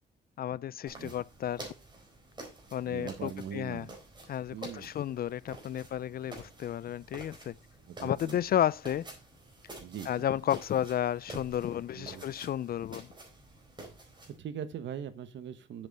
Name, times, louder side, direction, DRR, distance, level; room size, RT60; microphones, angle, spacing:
voice 1, 0.4-1.7 2.7-3.9 4.3-7.5 8.0-9.1 10.1-13.1, left 10 dB, 50° left, 0.4 m, -32 dB
sound 1, 0.8-14.4, right 2 dB, 25° right, 4.2 m, -49 dB
voice 2, 2.8-3.9 4.5-4.9 7.9-8.4 9.8-10.2 11.9-12.2 14.3-15.9, right 8 dB, 65° right, 1.2 m, -41 dB
7.8 x 7.3 x 4.0 m
cardioid pair, 90°, 20 cm